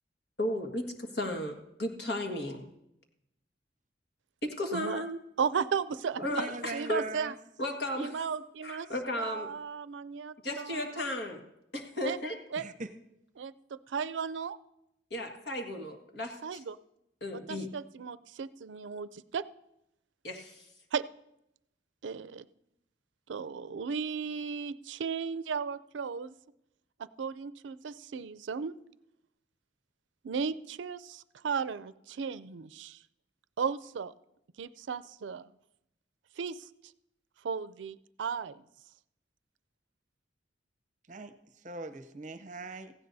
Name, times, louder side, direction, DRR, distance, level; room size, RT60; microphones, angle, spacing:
voice 1, 0.4-0.8 1.1-2.6 4.4-5.2 6.2-7.0 7.6-8.1 8.6-9.5 10.4-11.4 11.7-12.4 15.1-16.6 17.2-17.7 20.2-20.7, left 1 dB, 65° left, 4 dB, 1.7 m, -34 dB
voice 2, 4.7-5.1 5.4-6.4 6.7-7.3 8.0-8.9 9.2-11.1 12.0-12.2 12.5-12.6 13.4-14.6 16.4-16.8 17.5-19.4 20.9-21.0 22.0-22.5 23.3-26.3 27.0-28.8 30.2-33.0 33.6-34.1 34.6-35.5 36.4-36.7 37.4-38.6, right 6 dB, 90° right, 16 dB, 0.4 m, -35 dB
voice 3, 6.2-7.3 12.6-12.9 41.1-41.3 41.6-42.9, right 3 dB, 45° right, 11 dB, 0.7 m, -41 dB
17.0 x 15.5 x 2.7 m, 0.83 s
head